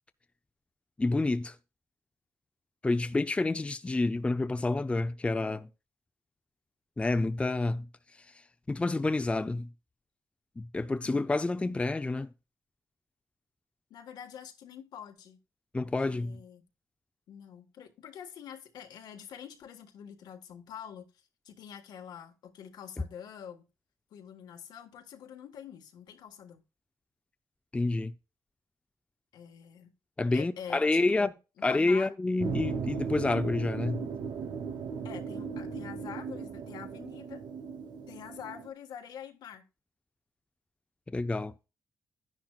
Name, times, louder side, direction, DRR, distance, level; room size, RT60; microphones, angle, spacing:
voice 1, 1.0-1.5 2.8-5.7 7.0-7.9 8.7-9.7 10.6-12.3 15.7-16.4 27.7-28.1 30.2-31.3 31.6-34.1 41.1-41.5, left 2 dB, 15° left, 0.5 m, -28 dB
voice 2, 13.9-15.4 15.8-16.6 17.3-21.1 21.4-23.7 24.1-26.6 29.3-29.9 30.3-32.1 35.0-37.4 38.1-39.6, left 8 dB, 85° left, 1.5 m, -46 dB
sound 1, 32.4-38.7, right 6 dB, 80° right, 0.9 m, -37 dB
10.5 x 10.5 x 2.4 m
cardioid pair, 95°, 7 cm